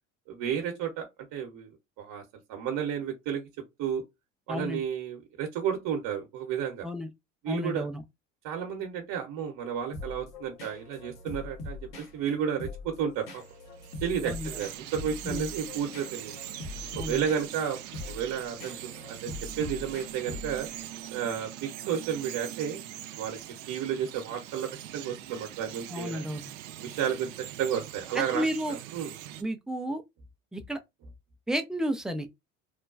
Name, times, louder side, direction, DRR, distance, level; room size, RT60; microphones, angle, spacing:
voice 1, 0.3-1.0 1.3-2.2 2.5-3.5 3.8-4.0 4.5-6.9 7.4-7.9 8.4-13.4 14.0-16.4 16.9-17.8 18.1-18.8 19.1-20.7 21.1-22.8 23.1-23.4 23.7-26.2 26.8-27.3 27.6-29.1, right 8 dB, 55° right, 0.9 m, -32 dB
voice 2, 4.5-4.8 6.8-7.1 7.5-8.0 14.2-14.5 15.2-15.5 17.0-17.2 25.9-26.4 28.1-28.8 29.4-30.0 30.5-30.8 31.5-32.3, equal, ahead, 0.3 m, -32 dB
sound 1, 9.9-20.8, left 3 dB, 55° left, 1.2 m, -42 dB
Bird vocalization bird call bird song, 13.3-29.4, right 12 dB, 70° right, 0.5 m, -42 dB
3.2 x 2.2 x 2.4 m
hypercardioid pair, 65°, 40 cm